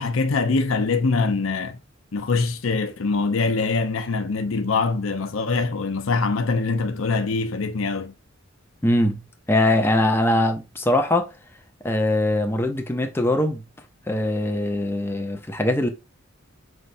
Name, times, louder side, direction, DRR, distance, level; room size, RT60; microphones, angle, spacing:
voice 1, 0.0-1.8 2.1-8.1, left 4 dB, 80° left, 0.7 m, -23 dB
voice 2, 8.8-9.2 9.5-11.3 11.8-13.6 14.1-15.9, left 1 dB, 10° left, 0.5 m, -21 dB
5.4 x 3.3 x 2.6 m
head